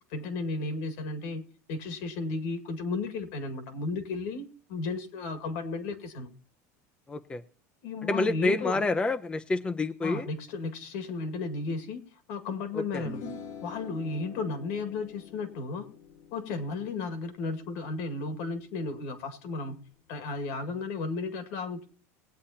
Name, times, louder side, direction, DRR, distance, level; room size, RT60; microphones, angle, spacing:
voice 1, 0.1-1.4 1.7-6.3 7.8-8.8 10.0-12.0 12.3-13.2 13.6-15.9 16.3-19.8 20.1-21.9, left 3 dB, 70° left, 8 dB, 2.0 m, -34 dB
voice 2, 7.1-7.4 8.0-10.3 12.9-13.0, left 2 dB, 15° left, 8 dB, 0.6 m, -28 dB
sound 1, 12.9-19.5, left 5 dB, 55° left, 1.4 m, -46 dB
19.0 x 8.5 x 2.9 m, 0.39 s
supercardioid pair, 120°, 7 cm